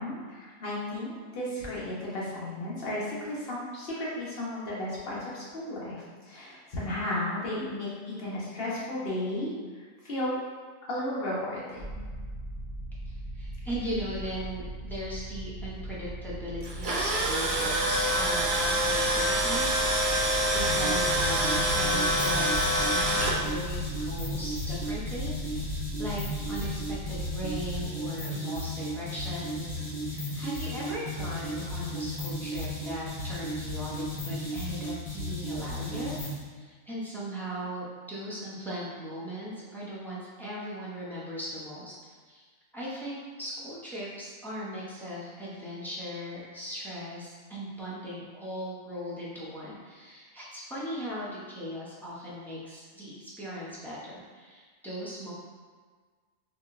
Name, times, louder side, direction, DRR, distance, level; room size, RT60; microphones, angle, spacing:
voice 1, 0.0-9.5 10.0-10.4 10.9-12.0, left 1 dB, 50° left, -7 dB, 1.2 m, -34 dB
sound 1, 11.8-27.9, right 1 dB, 20° left, 1.2 m, -39 dB
voice 2, 13.3-25.6 26.0-42.4 42.7-55.3, equal, ahead, -8 dB, 0.4 m, -38 dB
Tools, 16.6-23.3, right 1 dB, 55° right, 0.5 m, -26 dB
sound 2, 20.6-36.4, equal, 85° left, 1.5 m, -35 dB
4.1 x 2.8 x 2.5 m, 1.5 s
omnidirectional pair, 1.4 m